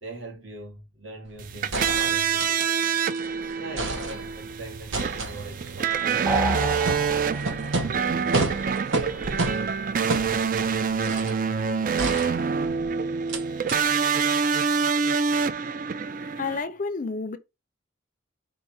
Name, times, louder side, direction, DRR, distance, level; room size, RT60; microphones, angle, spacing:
voice 1, 0.0-2.8 3.3-6.5 9.5-9.7, right 2 dB, 65° right, 1.8 m, -43 dB
sound 1, 1.3-1.4 1.7-3.3 3.5-4.5 4.9-11.4 12.0-12.8 13.3-13.4 13.7-13.8, right 2 dB, 85° right, 1.0 m, -31 dB
sound 2, 1.4-16.6, right 6 dB, 45° right, 0.4 m, -26 dB
sound 3, 6.3-7.8, right 2 dB, 10° right, 0.6 m, -28 dB
voice 2, 16.4-17.4, left 4 dB, 40° left, 0.5 m, -30 dB
4.8 x 2.5 x 4.2 m
head